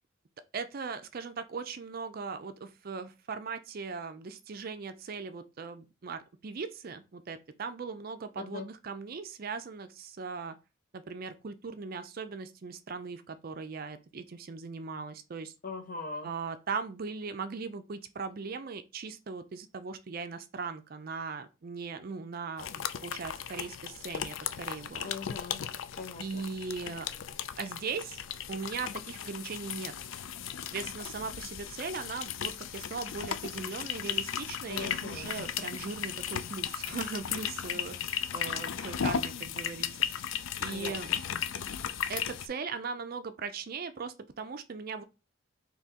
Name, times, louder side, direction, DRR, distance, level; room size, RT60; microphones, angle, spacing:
voice 1, 0.5-10.6 10.9-15.5 16.2-25.1 26.2-27.1 27.6-28.2 28.5-29.9 30.7-39.9 40.1-41.1 42.1-45.0, right 5 dB, 45° right, 0.4 m, -39 dB
voice 2, 15.6-16.3 25.0-25.6 25.9-26.5 34.7-35.4 40.7-41.2, left 4 dB, 45° left, 0.8 m, -41 dB
sound 1, 22.6-42.5, left 8 dB, 75° left, 0.4 m, -36 dB
4.1 x 2.9 x 3.6 m
head